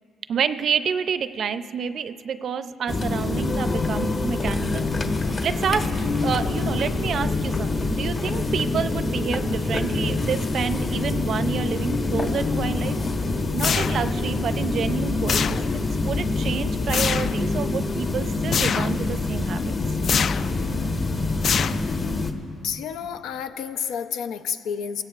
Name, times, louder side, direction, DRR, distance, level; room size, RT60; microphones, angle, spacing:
voice 1, 0.3-13.0 13.5-19.6, right 7 dB, 60° right, 12 dB, 0.5 m, -29 dB
sound 1, 2.9-22.3, left 3 dB, 40° left, 1.1 m, -25 dB
sound 2, 13.6-14.3 15.3-15.9 16.9-17.4 18.5-19.0 20.0-20.6 21.4-22.1, left 7 dB, 55° left, 0.3 m, -25 dB
voice 2, 22.6-25.0, left 7 dB, 90° left, 9 dB, 0.6 m, -30 dB
22.0 x 16.5 x 2.5 m, 2.5 s
cardioid pair, 90°, 0 cm